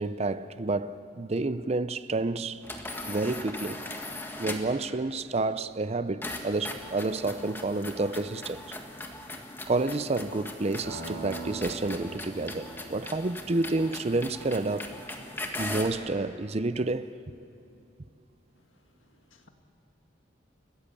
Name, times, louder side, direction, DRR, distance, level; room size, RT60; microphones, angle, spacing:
voice 1, 0.0-2.6 3.1-3.8 4.4-8.6 9.7-14.9 15.6-17.1, right 2 dB, 35° right, 0.5 m, -29 dB
sound 1, 2.6-4.8 6.2-16.0, left 1 dB, 10° left, 1.7 m, -39 dB
sound 2, 10.8-15.1, right 3 dB, 50° right, 4.7 m, -43 dB
voice 2, 19.0-19.5, left 3 dB, 85° left, 2.0 m, -62 dB
30.0 x 14.5 x 8.5 m
head